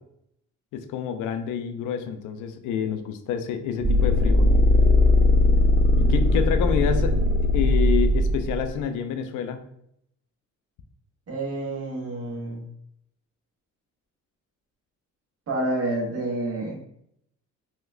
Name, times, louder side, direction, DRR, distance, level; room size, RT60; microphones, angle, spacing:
voice 1, 0.7-4.5 5.9-9.6, left 7 dB, 90° left, 8 dB, 0.4 m, -28 dB
sound 1, 3.8-8.7, left 2 dB, 25° right, 0.4 m, -19 dB
voice 2, 11.3-12.6 15.5-16.7, right 2 dB, 50° right, -1 dB, 1.1 m, -28 dB
3.1 x 2.8 x 2.4 m, 0.73 s
cardioid pair, 90°, 30 cm